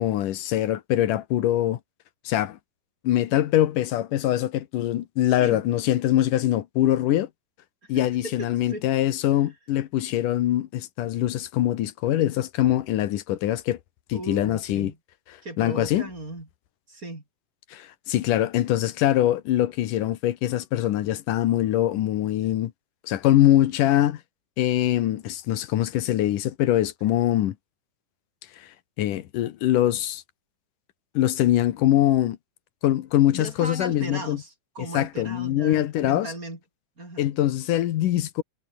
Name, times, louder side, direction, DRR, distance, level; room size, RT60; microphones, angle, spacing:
voice 1, 0.0-1.8 2.3-2.6 3.0-7.3 7.9-13.8 14.1-14.9 15.6-16.1 17.7-22.7 23.0-24.2 24.6-27.5 28.6-28.7 29.0-30.2 31.1-32.4 32.8-34.4 34.9-36.3 37.2-38.4, left 13 dB, 85° left, 2.8 m, -23 dB
voice 2, 5.2-5.6 7.8-8.8 14.1-15.0 15.4-16.5 16.9-17.2 33.3-36.6 37.0-37.3, right 2 dB, 25° right, 5.9 m, -37 dB
omnidirectional pair, 3.7 m